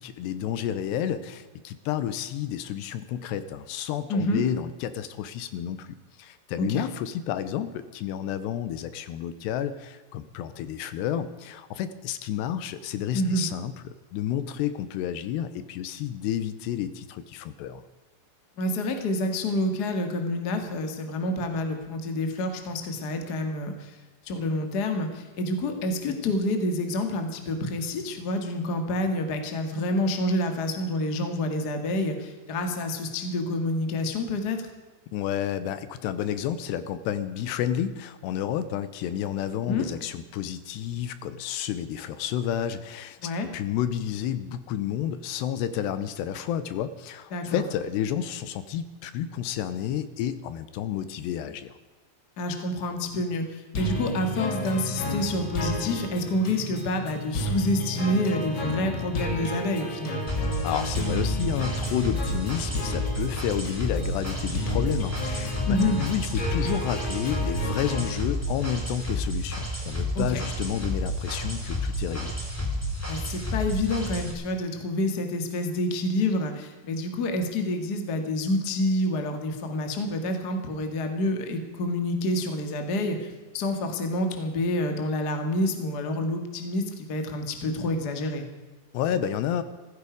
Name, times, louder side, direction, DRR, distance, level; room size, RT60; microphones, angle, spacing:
voice 1, 0.0-5.9 6.2-17.8 35.1-43.2 43.5-51.8 60.6-72.3 88.9-89.6, left 10 dB, 80° left, 13 dB, 2.8 m, -30 dB
voice 2, 4.1-4.4 6.7-6.8 13.1-13.5 18.6-24.0 24.2-34.6 39.6-39.9 43.2-43.5 47.3-47.6 52.4-60.2 65.7-66.0 70.1-70.4 73.1-88.4, left 1 dB, 60° left, 6 dB, 1.0 m, -28 dB
sound 1, 53.7-68.1, left 1 dB, 40° left, 1.9 m, -32 dB
sound 2, 60.3-74.3, equal, 5° left, 3.0 m, -31 dB
15.5 x 15.5 x 5.2 m, 1.3 s
omnidirectional pair, 5.1 m